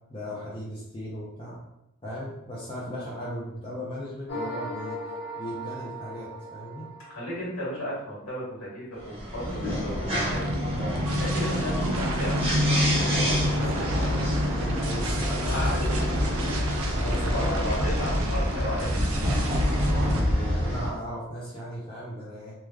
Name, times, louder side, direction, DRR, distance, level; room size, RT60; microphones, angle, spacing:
voice 1, 0.1-1.6 2.0-5.0 5.4-6.8 9.4-10.4 11.4-11.7 13.5-15.7 16.7-17.6 19.8-22.5, equal, 20° left, -7 dB, 0.5 m, -37 dB
sound 1, 4.3-7.7, right 1 dB, 45° left, 0.9 m, -37 dB
voice 2, 7.0-10.8 11.2-14.3 15.5-15.8 17.3-19.0, equal, 70° left, -6 dB, 1.3 m, -34 dB
sound 2, 9.0-20.9, equal, 25° right, 0.8 m, -28 dB
sound 3, 10.3-20.2, equal, 70° right, 0.4 m, -28 dB
3.2 x 2.3 x 2.3 m, 0.87 s
head